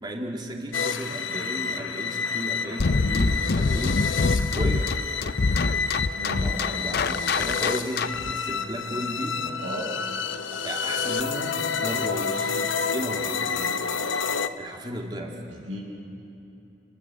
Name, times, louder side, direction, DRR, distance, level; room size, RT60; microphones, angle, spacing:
voice 1, 0.0-4.0 4.4-4.9 6.2-9.4 10.5-12.6 12.9-13.7 14.6-15.3, right 1 dB, 25° right, 0 dB, 2.6 m, -34 dB
sound 1, 0.7-14.5, left 5 dB, 80° left, 1.0 m, -29 dB
sound 2, 2.8-8.3, left 3 dB, 55° left, 0.6 m, -25 dB
voice 2, 6.1-6.5 9.6-9.9 15.5-15.8, equal, 90° right, -1 dB, 7.4 m, -35 dB
29.5 x 21.0 x 7.7 m, 3.0 s
head